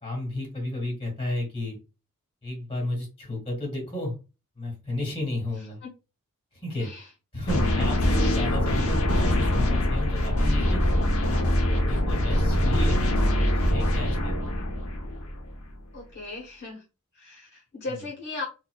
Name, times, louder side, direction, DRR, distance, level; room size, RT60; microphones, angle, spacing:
voice 1, 0.0-1.8 2.4-4.1 4.6-5.8 6.6-6.9 7.3-10.8 11.2-13.0 13.7-14.3 17.9-18.0, left 1 dB, 25° left, -1 dB, 2.0 m, -33 dB
voice 2, 6.8-7.1 15.9-16.8 17.1-18.4, left 3 dB, 50° left, -4 dB, 1.3 m, -37 dB
sound 1, 7.5-15.6, left 1 dB, 70° left, 0.9 m, -23 dB
4.0 x 2.9 x 2.4 m, 0.29 s
head